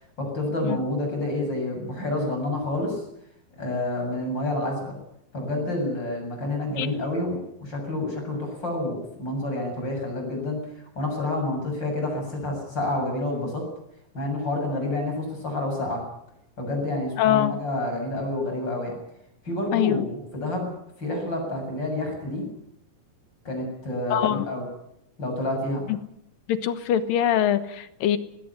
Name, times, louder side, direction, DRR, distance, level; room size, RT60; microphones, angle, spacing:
voice 1, 0.2-3.0 3.6-4.9 5.3-10.6 11.0-13.6 14.1-16.0 16.6-18.9 19.4-20.7 21.0-22.5 23.4-24.7 25.2-25.8, left 1 dB, 30° left, 2 dB, 7.8 m, -28 dB
voice 2, 17.2-17.6 19.7-20.1 24.1-24.5 25.9-26.0 26.5-28.2, left 11 dB, 90° left, 12 dB, 3.0 m, -23 dB
19.5 x 17.0 x 9.9 m, 0.79 s
omnidirectional pair, 3.9 m